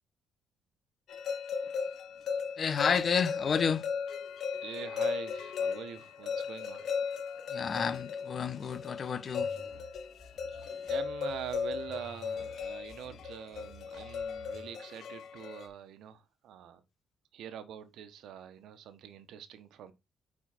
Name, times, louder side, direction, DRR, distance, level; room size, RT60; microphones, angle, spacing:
sound 1, 1.1-15.7, left 6 dB, 70° left, 1.5 m, -36 dB
voice 1, 2.6-3.9 7.5-9.5, left 6 dB, 55° left, 1.1 m, -30 dB
voice 2, 4.6-6.8 10.5-16.8 17.3-19.9, right 9 dB, 75° right, 1.2 m, -44 dB
sound 2, 9.4-14.7, equal, 20° left, 4.0 m, -54 dB
8.9 x 4.9 x 4.3 m
supercardioid pair, 60°, 0 cm